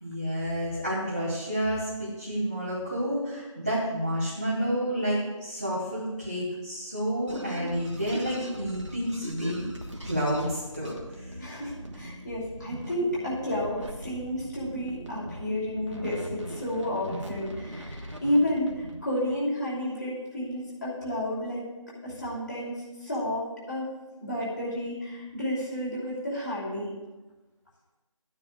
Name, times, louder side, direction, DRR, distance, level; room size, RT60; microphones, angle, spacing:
voice 1, 0.0-9.6 10.0-11.4, equal, 15° right, -9 dB, 1.0 m, -30 dB
sound 1, 7.3-19.0, right 1 dB, 60° right, 1.3 m, -40 dB
voice 2, 11.4-21.6 22.0-23.9 24.2-27.0, left 1 dB, 35° left, -7 dB, 3.1 m, -31 dB
12.5 x 9.5 x 2.5 m, 1.1 s
figure-of-eight pair, 170°, 17 cm